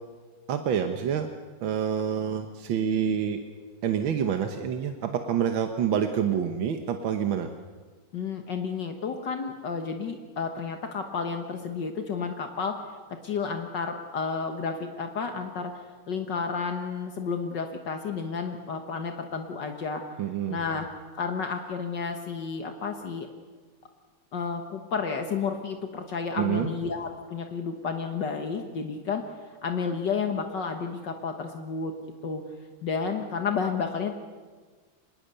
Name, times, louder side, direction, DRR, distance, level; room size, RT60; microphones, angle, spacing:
voice 1, 0.5-1.3 1.6-3.4 3.8-7.5 20.2-20.6 26.4-26.7, right 8 dB, 85° right, 6 dB, 1.9 m, -27 dB
voice 2, 8.1-12.8 13.1-20.0 20.5-20.9 21.1-23.3 24.3-29.2 29.6-31.9 32.2-32.4 32.8-34.1, left 5 dB, 65° left, 5 dB, 2.0 m, -31 dB
25.5 x 20.5 x 6.8 m, 1.4 s
omnidirectional pair, 2.1 m